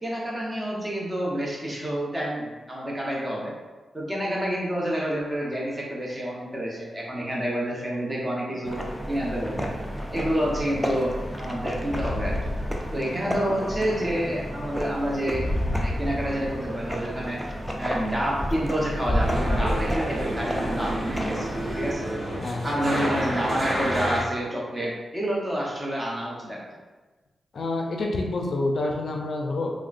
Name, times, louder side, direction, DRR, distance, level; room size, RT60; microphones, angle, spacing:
voice 1, 0.0-3.5 3.9-9.7 10.1-12.5 12.9-15.4 15.7-17.4 17.8-21.5 21.8-22.1 22.6-26.6, equal, 20° right, -4 dB, 0.9 m, -28 dB
sound 1, 8.7-21.9, equal, 5° left, 0.4 m, -30 dB
sound 2, 19.2-24.2, right 1 dB, 40° right, 1.1 m, -29 dB
voice 2, 22.4-22.7 27.5-29.7, left 2 dB, 65° left, 1 dB, 0.4 m, -28 dB
3.6 x 2.1 x 2.5 m, 1.2 s
cardioid pair, 50°, 0 cm